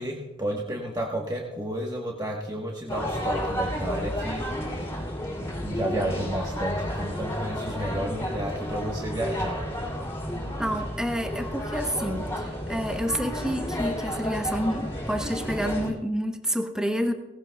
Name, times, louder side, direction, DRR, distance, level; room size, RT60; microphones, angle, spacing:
voice 1, 0.0-4.5 5.4-9.6, right 1 dB, 20° right, -1 dB, 1.1 m, -31 dB
sound 1, 2.9-15.9, equal, 15° left, 3.1 m, -32 dB
voice 2, 10.3-17.1, equal, 5° right, 5 dB, 0.8 m, -29 dB
18.0 x 16.0 x 2.3 m, 1.1 s
head